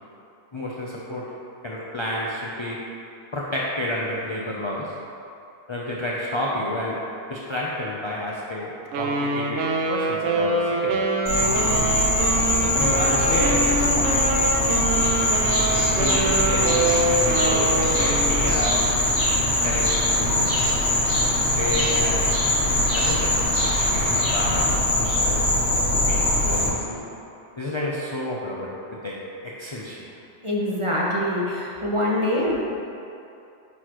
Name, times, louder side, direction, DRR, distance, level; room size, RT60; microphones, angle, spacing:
voice 1, 0.5-1.3 1.6-2.8 3.3-4.9 5.7-7.0 7.3-9.6 9.9-11.1 12.7-14.2 16.0-18.8 19.6-20.5 21.6-22.3 22.9-23.3 23.6-24.7 25.0-25.7 26.1-27.0 27.6-29.2 29.4-30.0, left 1 dB, 35° left, -5 dB, 0.5 m, -30 dB
Wind instrument woodwind instrument, 8.9-18.5, right 2 dB, 85° right, 1.0 m, -25 dB
Insect, 11.3-26.7, left 1 dB, 70° left, 1.3 m, -22 dB
Bird vocalization bird call bird song, 15.0-24.6, equal, 60° right, 1.9 m, -32 dB
voice 2, 30.4-32.5, left 1 dB, 30° right, -5 dB, 0.8 m, -24 dB
9.4 x 4.1 x 3.0 m, 2.7 s
omnidirectional pair, 1.2 m